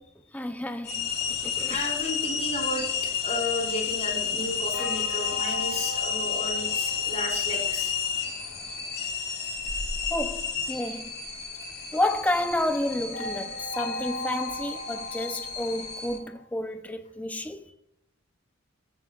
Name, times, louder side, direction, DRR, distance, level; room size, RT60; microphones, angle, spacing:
voice 1, 0.3-1.9 10.1-11.2 11.9-17.7, left 1 dB, 5° left, 0.6 m, -30 dB
sound 1, 0.8-16.2, left 6 dB, 50° left, 3.1 m, -31 dB
voice 2, 1.7-2.8 3.2-7.9, left 1 dB, 30° left, 4.4 m, -33 dB
sound 2, 4.7-8.3 11.9-16.5, left 1 dB, 80° left, 1.5 m, -39 dB
16.0 x 9.0 x 2.4 m
head